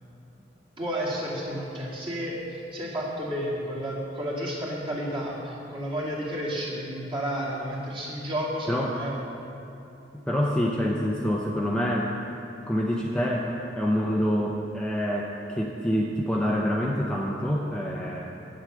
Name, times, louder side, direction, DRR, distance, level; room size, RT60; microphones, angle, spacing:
voice 1, 0.8-9.1, equal, 30° right, -6 dB, 2.4 m, -31 dB
voice 2, 10.1-12.1 12.7-18.4, equal, 5° left, -3 dB, 0.6 m, -26 dB
8.8 x 8.1 x 7.4 m, 2.9 s
head